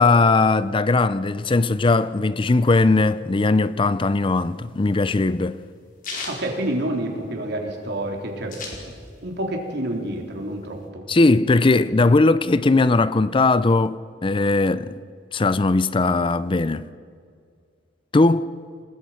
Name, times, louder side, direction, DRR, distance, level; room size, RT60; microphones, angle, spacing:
voice 1, 0.0-5.6 11.1-15.0 15.3-16.8 18.1-18.5, left 3 dB, 25° left, 0.5 m, -19 dB
sound 1, 4.3-7.5 7.8-7.9 8.1-9.4 9.7-10.8, left 3 dB, 50° left, 4.9 m, -36 dB
voice 2, 6.3-8.6 9.2-11.0, right 1 dB, 60° right, 3.7 m, -28 dB
28.0 x 19.5 x 5.8 m
head